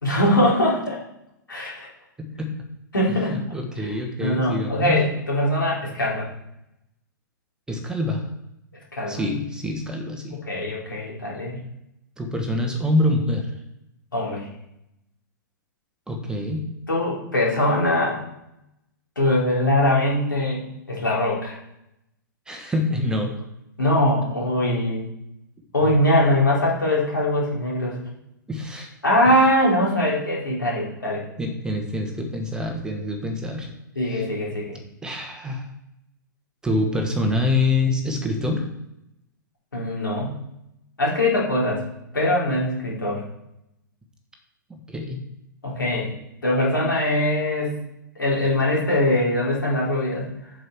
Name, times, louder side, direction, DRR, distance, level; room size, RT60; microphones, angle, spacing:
voice 1, 0.0-1.0 1.5-1.9 2.9-3.4 3.8-3.9 4.2-6.3 8.9-9.2 10.5-11.6 14.1-14.5 16.9-18.2 19.1-20.6 20.9-21.6 23.8-25.0 25.7-28.0 29.0-31.2 33.9-34.8 39.7-40.4 41.0-41.8 42.1-43.3 45.6-46.1 46.4-47.8 48.2-50.3, left 1 dB, 75° left, -4 dB, 3.4 m, -22 dB
voice 2, 2.2-2.5 3.1-5.0 7.7-8.3 9.1-10.4 12.2-13.5 16.1-16.6 22.5-23.3 28.5-28.9 29.3-29.5 31.4-33.7 34.0-34.3 35.0-35.7 36.6-38.7 44.7-45.2, left 2 dB, 5° right, 3 dB, 1.3 m, -26 dB
7.8 x 6.3 x 4.7 m, 0.85 s
figure-of-eight pair, 110°, 11 cm